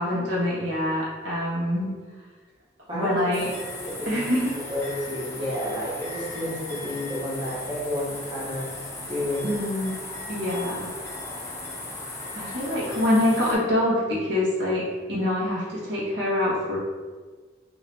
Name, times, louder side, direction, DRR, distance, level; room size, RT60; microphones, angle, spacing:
voice 1, 0.0-1.9 2.9-3.5 4.1-4.5 9.4-9.9 10.3-10.9 12.3-16.8, left 1 dB, 75° right, -7 dB, 1.5 m, -25 dB
voice 2, 2.9-3.4 3.8-4.4 4.7-9.6 13.1-13.2, left 1 dB, 25° right, -8 dB, 0.9 m, -31 dB
sound 1, 3.3-13.5, left 2 dB, 15° left, 0.6 m, -37 dB
5.1 x 2.9 x 2.7 m, 1.4 s
head